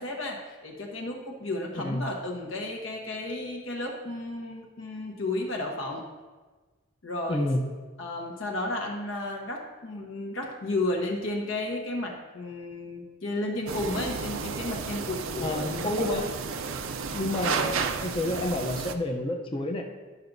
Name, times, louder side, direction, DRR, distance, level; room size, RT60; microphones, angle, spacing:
voice 1, 0.0-6.0 7.0-7.5 8.0-15.9, left 2 dB, 70° left, 0 dB, 1.1 m, -33 dB
voice 2, 1.8-2.1 7.3-7.6 15.4-16.4 17.1-19.8, left 1 dB, 25° left, 1 dB, 0.6 m, -29 dB
sound 1, 13.7-18.9, right 5 dB, 75° right, 0.5 m, -32 dB
11.0 x 5.9 x 2.6 m, 1.3 s
head